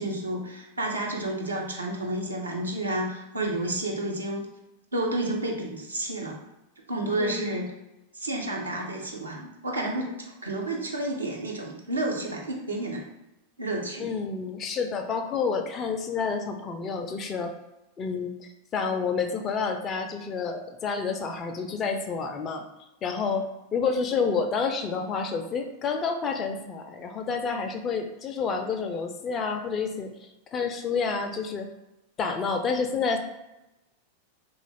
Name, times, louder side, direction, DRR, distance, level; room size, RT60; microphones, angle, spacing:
voice 1, 0.0-4.4 4.9-6.4 6.9-7.7 8.1-13.0 13.6-14.1, right 1 dB, 80° right, -1 dB, 0.6 m, -30 dB
voice 2, 7.2-7.6 14.0-17.5 18.0-22.6 23.0-30.1 30.5-31.7 32.2-33.2, left 5 dB, 25° left, 4 dB, 0.3 m, -29 dB
2.4 x 2.3 x 3.2 m, 0.93 s
figure-of-eight pair, 90°, 0 cm